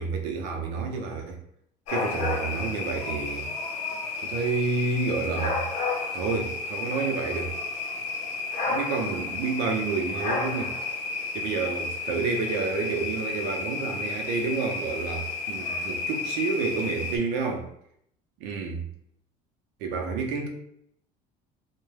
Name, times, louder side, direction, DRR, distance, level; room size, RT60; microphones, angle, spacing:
voice 1, 0.0-1.4 1.9-3.5 4.2-5.6 6.1-7.6 8.7-10.8 11.3-17.7 18.4-18.8 19.8-20.5, right 4 dB, 85° right, 3 dB, 0.6 m, -29 dB
sound 1, 1.9-17.2, left 4 dB, 50° left, 0.6 m, -32 dB
2.2 x 2.1 x 3.2 m, 0.70 s
cardioid pair, 165°, 16 cm